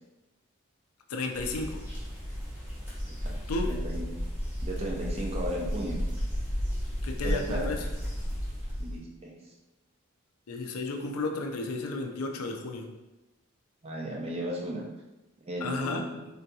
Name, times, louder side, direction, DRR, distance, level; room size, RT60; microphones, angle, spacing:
voice 1, 1.1-1.8 3.5-3.7 7.0-7.8 10.5-12.9 15.6-16.1, left 3 dB, 85° left, 3 dB, 0.5 m, -33 dB
sound 1, 1.3-9.0, equal, 10° right, 0.8 m, -33 dB
voice 2, 3.1-4.1 4.6-6.0 7.2-7.8 8.8-9.5 13.8-14.8 15.4-16.3, right 1 dB, 30° right, -2 dB, 0.5 m, -35 dB
3.7 x 2.7 x 2.3 m, 1.0 s
head